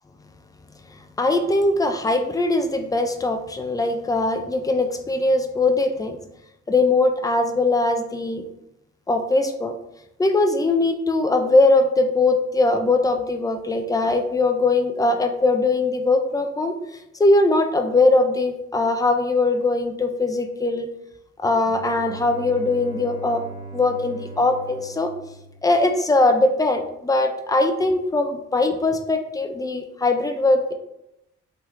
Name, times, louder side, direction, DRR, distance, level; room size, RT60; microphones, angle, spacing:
voice 1, 0.9-6.2 6.7-8.4 9.1-9.7 10.2-16.7 17.2-20.9 21.4-23.4 23.7-25.1 25.6-30.7, left 2 dB, 10° left, 6 dB, 0.4 m, -21 dB
Bowed string instrument, 21.6-26.3, right 3 dB, 85° right, 0.6 m, -39 dB
3.2 x 2.7 x 2.3 m, 0.86 s
hypercardioid pair, 45°, 33 cm